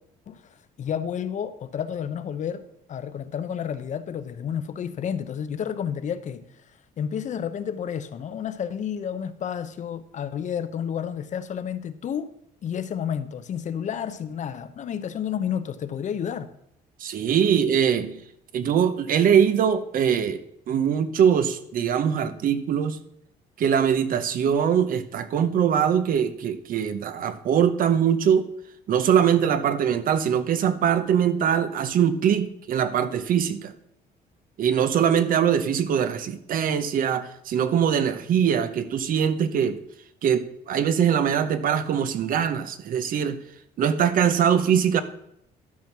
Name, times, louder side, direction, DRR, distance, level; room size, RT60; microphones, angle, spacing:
voice 1, 0.3-6.4 7.0-12.3 12.6-16.5, left 8 dB, 45° left, 0.7 m, -31 dB
voice 2, 17.0-18.2 18.5-20.4 20.7-23.0 23.6-28.5 28.9-33.7 34.6-39.8 40.2-43.4 43.8-45.0, right 8 dB, 55° right, 0.8 m, -22 dB
12.0 x 4.4 x 5.9 m
cardioid pair, 110°, 17 cm